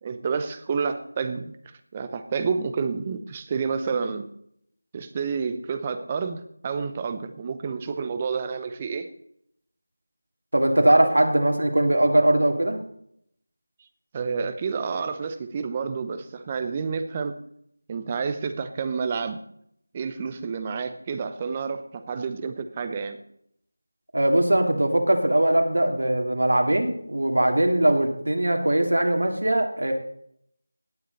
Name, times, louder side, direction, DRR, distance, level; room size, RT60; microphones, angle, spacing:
voice 1, 0.0-1.5 1.9-4.3 4.9-9.1 11.0-11.1 14.1-17.4 17.9-19.4 19.9-23.2, right 5 dB, 20° right, 9 dB, 0.8 m, -29 dB
voice 2, 10.5-12.8 24.1-29.9, right 1 dB, 80° right, 3 dB, 2.6 m, -21 dB
17.5 x 9.3 x 4.1 m, 0.70 s
figure-of-eight pair, 175°, 0 cm